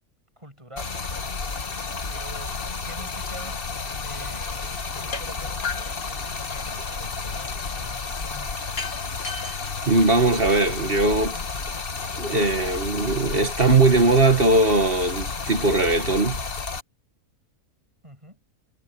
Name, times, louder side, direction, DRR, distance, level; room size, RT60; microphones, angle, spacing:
voice 1, 0.4-1.5 2.1-3.7 4.0-6.1 6.6-8.7 18.0-18.4, right 1 dB, 20° right, 8.0 m, -46 dB
Stream, 0.8-16.8, left 4 dB, 40° left, 1.5 m, -31 dB
sound 1, 5.1-5.3 5.6-6.8 8.8-10.8, left 4 dB, 65° left, 2.5 m, -35 dB
voice 2, 9.9-11.4 12.2-16.4, right 2 dB, 40° right, 1.9 m, -20 dB
omnidirectional pair, 1.6 m